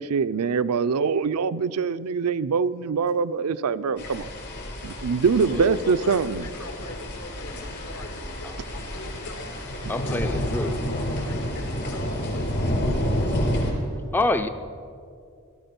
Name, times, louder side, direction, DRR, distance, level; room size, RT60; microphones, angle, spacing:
voice 1, 0.0-4.3 4.8-6.5 9.9-10.4, right 5 dB, 85° right, 13 dB, 0.5 m, -24 dB
sound 1, 4.0-13.7, equal, 55° left, 3.8 m, -29 dB
voice 2, 5.4-14.3, left 2 dB, 70° left, 4 dB, 2.1 m, -41 dB
sound 2, 5.5-12.1, left 1 dB, 85° left, 2.7 m, -47 dB
voice 3, 9.9-10.8 14.1-14.5, left 2 dB, 10° left, 9 dB, 0.4 m, -26 dB
17.5 x 13.0 x 5.9 m, 2.4 s
head